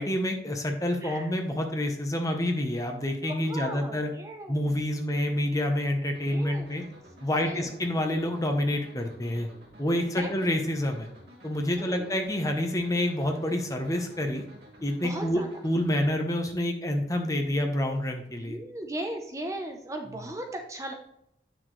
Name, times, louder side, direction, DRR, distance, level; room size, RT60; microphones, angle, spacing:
voice 1, 0.0-4.1 4.5-6.8 7.2-9.5 9.8-11.1 11.4-14.4 14.8-18.6 20.1-20.3, left 1 dB, 20° left, 4 dB, 0.9 m, -28 dB
voice 2, 3.3-4.8 6.3-6.7 7.4-7.7 10.2-10.3 11.7-12.3 14.9-15.5 18.4-20.9, right 1 dB, 20° right, 3 dB, 0.6 m, -37 dB
sound 1, 6.1-16.1, equal, 65° right, 2.1 m, -52 dB
8.6 x 6.1 x 3.1 m, 0.79 s
head